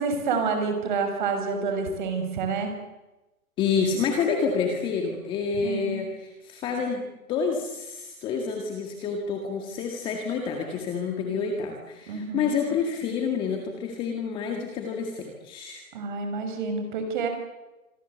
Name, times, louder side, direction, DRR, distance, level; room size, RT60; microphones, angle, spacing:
voice 1, 0.0-2.7 5.6-6.0 12.1-12.5 15.9-17.3, right 4 dB, 30° right, 6 dB, 6.1 m, -28 dB
voice 2, 3.6-7.0 7.3-15.8, left 5 dB, 10° left, 2 dB, 1.9 m, -28 dB
26.5 x 24.0 x 8.2 m, 1.0 s
hypercardioid pair, 165°, 44 cm